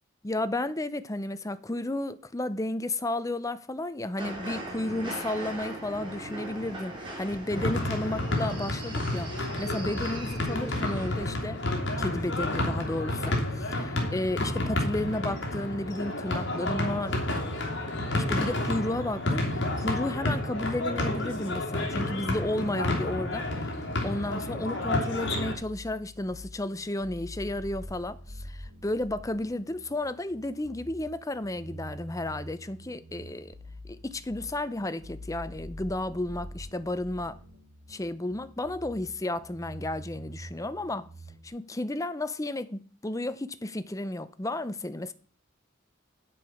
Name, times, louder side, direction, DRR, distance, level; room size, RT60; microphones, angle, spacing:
voice 1, 0.2-17.2 18.2-33.5 33.8-37.4 37.9-41.1 41.4-45.1, left 1 dB, 15° left, 0.6 m, -33 dB
sound 1, 4.2-11.4, right 1 dB, 25° right, 3.4 m, -40 dB
sound 2, 7.5-25.5, left 1 dB, 60° left, 2.9 m, -30 dB
sound 3, 25.5-41.5, equal, 75° right, 3.6 m, -45 dB
8.8 x 7.7 x 6.4 m
head